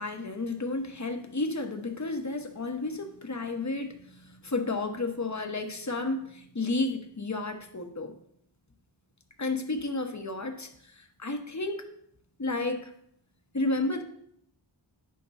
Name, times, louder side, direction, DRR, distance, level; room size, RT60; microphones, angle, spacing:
voice 1, 0.0-8.1 9.4-11.9 12.4-12.9 13.5-14.0, left 2 dB, 35° left, 5 dB, 1.1 m, -32 dB
10.5 x 3.8 x 5.5 m, 0.70 s
wide cardioid pair, 45°, 48 cm